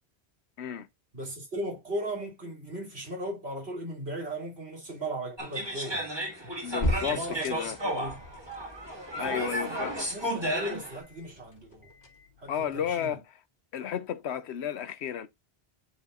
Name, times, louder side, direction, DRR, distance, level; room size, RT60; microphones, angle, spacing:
voice 1, 1.1-6.0 7.0-8.2 9.2-9.8 10.1-11.9 12.4-13.2, right 1 dB, 75° right, 3.3 m, -37 dB
sound 1, 5.4-11.0, equal, 25° right, 2.0 m, -33 dB
sound 2, 6.4-12.8, equal, 55° left, 1.6 m, -38 dB
voice 2, 6.6-7.8 9.2-9.9 12.5-13.4 13.7-15.3, left 9 dB, 80° left, 1.0 m, -33 dB
9.9 x 4.5 x 2.4 m
omnidirectional pair, 1.1 m